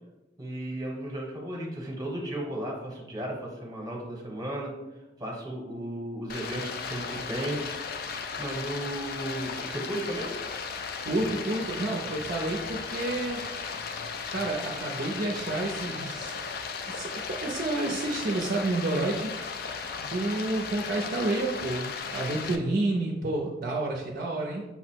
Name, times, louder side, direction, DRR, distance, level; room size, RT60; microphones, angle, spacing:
voice 1, 0.4-4.7 5.2-7.6 8.4-10.4, right 1 dB, 20° right, -1 dB, 0.9 m, -34 dB
Stream, 6.3-22.6, left 5 dB, 50° left, 0.3 m, -36 dB
voice 2, 11.0-13.4 14.3-16.4 16.9-19.3 20.0-24.7, right 2 dB, 50° right, 0 dB, 0.5 m, -30 dB
5.6 x 2.0 x 4.3 m, 1.0 s
head